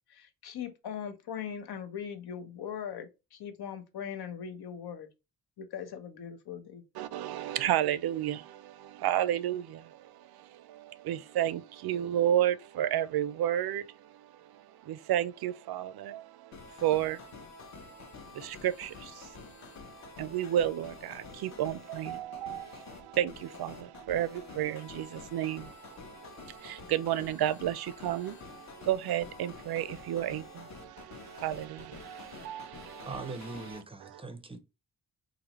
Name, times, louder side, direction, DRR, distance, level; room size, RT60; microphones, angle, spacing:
voice 1, 0.1-5.1 5.6-6.8, left 8 dB, 85° left, 0.9 m, -40 dB
voice 2, 7.0-33.4 33.7-34.2, right 11 dB, 80° right, 0.5 m, -33 dB
sound 1, 16.5-33.8, left 5 dB, 50° left, 0.7 m, -49 dB
voice 3, 33.0-34.6, right 3 dB, 15° right, 0.4 m, -41 dB
4.0 x 2.6 x 2.9 m
wide cardioid pair, 175°, 37 cm